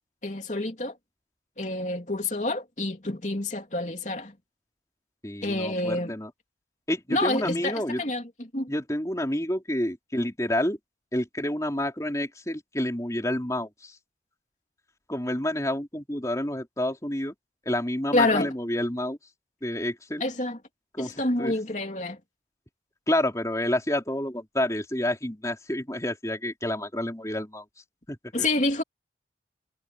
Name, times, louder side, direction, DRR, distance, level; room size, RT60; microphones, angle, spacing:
voice 1, 0.2-1.0 1.6-4.3 5.4-6.1 7.1-8.2 8.5-8.7 18.1-18.5 20.2-20.6 21.0-22.2 28.3-28.8, left 2 dB, 40° left, 3.1 m, -27 dB
voice 2, 5.2-6.3 6.9-8.0 8.7-10.8 11.1-13.9 15.1-17.3 17.6-19.2 19.6-20.2 20.9-21.5 23.1-27.6 28.1-28.5, left 1 dB, 20° left, 3.4 m, -29 dB
head